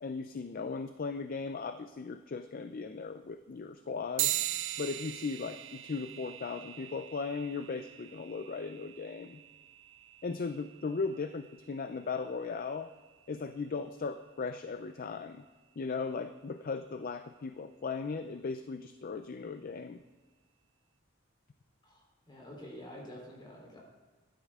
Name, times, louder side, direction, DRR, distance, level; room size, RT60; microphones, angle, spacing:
voice 1, 0.0-4.3 4.8-9.4 10.2-12.9 13.3-15.4 15.8-20.0, left 4 dB, 45° left, 9 dB, 0.5 m, -37 dB
sound 1, 4.2-14.0, right 14 dB, 70° right, 0.5 m, -41 dB
voice 2, 21.8-23.8, equal, 25° left, -2 dB, 3.6 m, -48 dB
15.0 x 11.5 x 3.6 m, 1.4 s
head